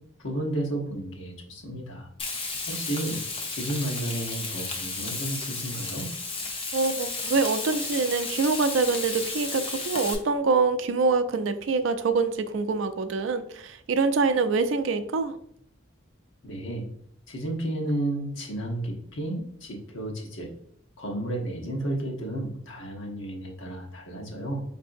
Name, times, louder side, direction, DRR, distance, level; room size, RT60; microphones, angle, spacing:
voice 1, 0.2-2.1 2.7-3.2 3.5-6.1 16.4-16.9 17.3-20.5 21.0-24.6, right 1 dB, 80° left, 0 dB, 0.9 m, -32 dB
Frying (food), 2.2-10.1, left 3 dB, 25° left, 0.5 m, -33 dB
voice 2, 6.7-15.4, right 4 dB, 75° right, 10 dB, 0.4 m, -25 dB
4.6 x 2.6 x 2.5 m, 0.68 s
head